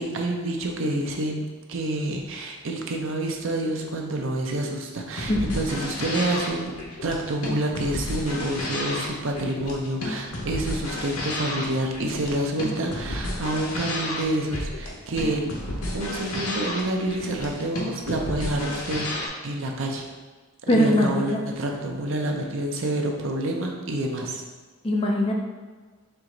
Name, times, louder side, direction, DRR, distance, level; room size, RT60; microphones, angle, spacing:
voice 1, 0.0-1.4 1.7-6.7 7.0-15.6 15.9-20.1 20.7-24.4, right 1 dB, 60° right, 2 dB, 0.6 m, -28 dB
sound 1, 5.1-19.3, left 1 dB, 90° left, 1.0 m, -32 dB
voice 2, 20.7-21.4 24.8-25.3, left 1 dB, 25° left, 0 dB, 0.4 m, -21 dB
4.5 x 3.0 x 3.8 m, 1.4 s
head